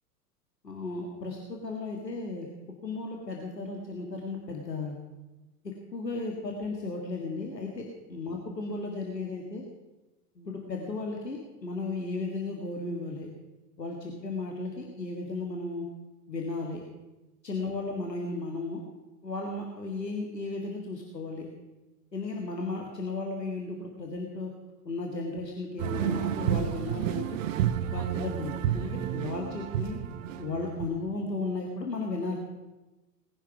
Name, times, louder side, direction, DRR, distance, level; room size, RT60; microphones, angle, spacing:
voice 1, 0.6-5.0 5.6-9.7 10.4-13.3 13.8-15.9 16.3-16.8 17.4-18.8 19.2-21.5 22.1-24.5 24.9-27.4 27.9-30.0 30.4-32.4, left 3 dB, 85° left, 1 dB, 2.0 m, -35 dB
sound 1, 25.8-30.9, right 10 dB, 50° right, 1.1 m, -30 dB
19.0 x 10.0 x 6.0 m, 1.1 s
figure-of-eight pair, 95°, 48 cm